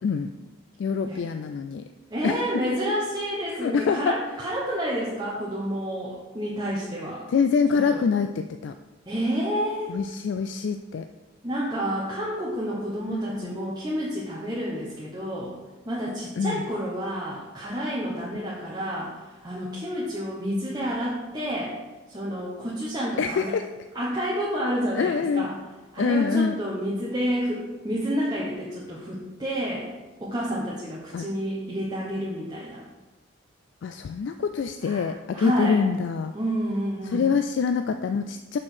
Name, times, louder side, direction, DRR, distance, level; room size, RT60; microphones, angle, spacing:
voice 1, 0.0-0.3 0.8-1.8 2.2-2.6 3.6-4.2 7.3-8.7 9.9-11.1 13.1-13.6 16.4-16.6 23.2-23.7 24.9-25.5 26.0-26.6 31.1-31.3 33.8-36.3 37.0-38.6, left 5 dB, 65° left, 8 dB, 0.3 m, -25 dB
voice 2, 2.1-7.2 7.9-8.0 9.1-10.0 11.4-15.5 15.9-19.2 19.4-21.8 22.1-23.5 23.9-25.5 25.9-29.9 30.2-32.8 34.8-35.1 35.3-35.8 36.3-37.2, equal, 20° right, -6 dB, 1.1 m, -29 dB
6.0 x 4.6 x 6.4 m, 1.2 s
head